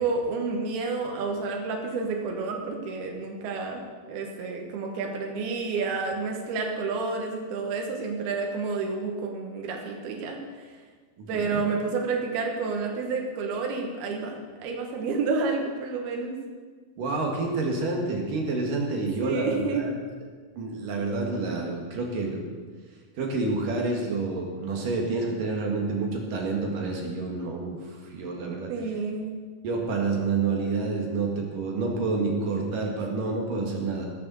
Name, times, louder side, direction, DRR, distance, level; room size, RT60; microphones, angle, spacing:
voice 1, 0.0-10.7 11.3-16.3 19.2-19.9 28.7-29.4, right 4 dB, 85° right, 1 dB, 3.3 m, -30 dB
voice 2, 11.2-11.6 17.0-19.9 20.6-22.4 23.2-27.8 28.1-28.7 29.6-34.1, right 3 dB, 65° right, 0 dB, 3.4 m, -28 dB
18.0 x 6.9 x 7.0 m, 1.5 s
omnidirectional pair, 4.3 m